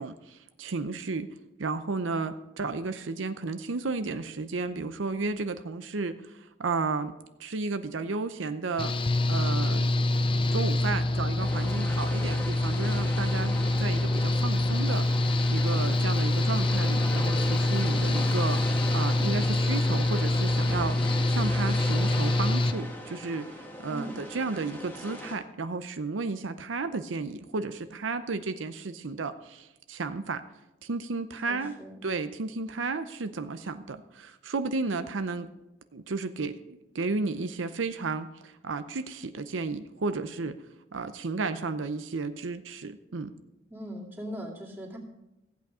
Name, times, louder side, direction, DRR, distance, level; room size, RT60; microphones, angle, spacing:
voice 1, 0.0-1.3 1.6-8.9 9.3-10.1 10.5-18.6 18.9-21.0 21.3-30.4 30.8-31.8 32.0-35.5 35.9-40.6 40.9-43.3, right 3 dB, 90° right, 10 dB, 0.7 m, -33 dB
Engine / Mechanical fan, 8.8-22.7, left 1 dB, 25° left, 0.5 m, -25 dB
voice 2, 10.9-12.1 23.9-24.2 31.5-32.0 43.7-45.0, equal, 10° right, -3 dB, 2.4 m, -41 dB
sound 1, 11.4-25.4, equal, 10° left, 1.4 m, -38 dB
15.5 x 8.4 x 4.9 m, 0.93 s
head